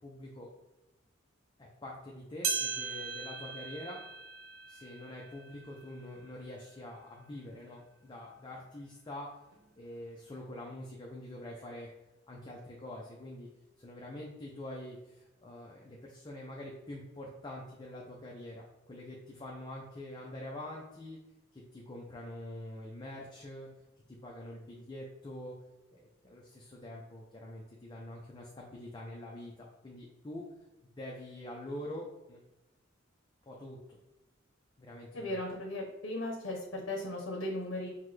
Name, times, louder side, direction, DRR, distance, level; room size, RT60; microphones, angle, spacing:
voice 1, 0.0-0.5 1.6-4.0 4.7-9.3 9.8-11.9 12.3-13.5 13.8-21.2 21.5-23.7 24.1-25.5 25.9-30.4 31.0-32.4 33.5-34.0 34.8-35.4, left 1 dB, 25° left, -2 dB, 0.5 m, -45 dB
sound 1, 2.4-7.1 7.6-7.7 8.5-8.6 9.5-9.6, right 5 dB, 90° right, 0.5 m, -39 dB
voice 2, 35.1-37.9, left 1 dB, 70° left, -1 dB, 0.8 m, -37 dB
5.7 x 2.2 x 3.2 m, 0.98 s
head